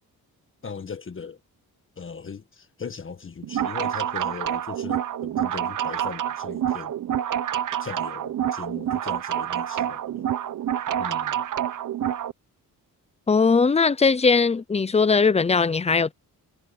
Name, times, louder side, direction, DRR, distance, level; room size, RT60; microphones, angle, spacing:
voice 1, 0.6-1.4 2.0-6.9 7.8-10.3 11.0-11.4, left 5 dB, 35° left, 1.7 m, -38 dB
sound 1, 3.4-12.3, right 10 dB, 55° right, 1.0 m, -27 dB
voice 2, 13.3-16.1, left 4 dB, 20° left, 0.7 m, -19 dB
cardioid pair, 115°, 36 cm